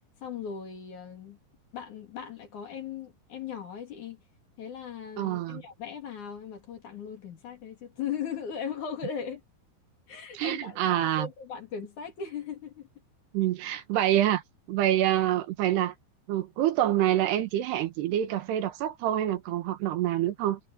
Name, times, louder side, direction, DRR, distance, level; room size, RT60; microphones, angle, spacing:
voice 1, 0.2-1.4 1.7-4.2 4.6-9.4 10.1-12.9, left 7 dB, 50° left, 3.6 m, -38 dB
voice 2, 5.2-5.6 10.4-11.3 13.3-14.4 14.7-15.9 16.3-20.6, right 12 dB, 75° right, 3.4 m, -26 dB
omnidirectional pair, 4.9 m